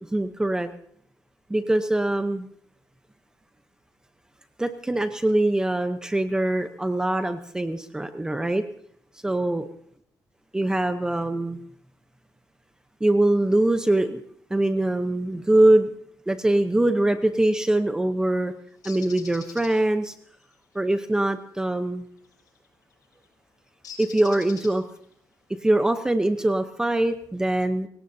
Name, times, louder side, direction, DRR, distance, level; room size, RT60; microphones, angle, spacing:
voice 1, 0.1-0.7 1.5-2.5 4.6-8.6 9.2-9.7 10.5-11.6 13.0-14.2 14.5-15.9 16.3-18.5 18.8-20.1 20.7-22.1 24.0-24.8 25.6-27.9, right 1 dB, 10° right, 8 dB, 0.8 m, -23 dB
Bird, 18.8-19.7 22.3-22.6 23.8-25.0, left 7 dB, 70° left, 7.2 m, -43 dB
26.0 x 17.5 x 2.8 m, 0.65 s
cardioid pair, 150°, 7 cm